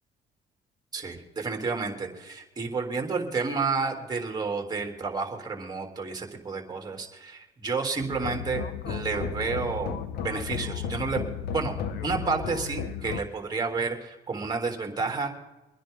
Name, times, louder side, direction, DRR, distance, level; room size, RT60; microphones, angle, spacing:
voice 1, 0.9-11.2 11.5-11.8 12.0-15.3, right 4 dB, 25° right, 3 dB, 3.5 m, -30 dB
sound 1, 8.0-13.2, left 7 dB, 70° left, 1.2 m, -34 dB
25.0 x 10.5 x 3.9 m, 1.0 s
cardioid pair, 110°, 17 cm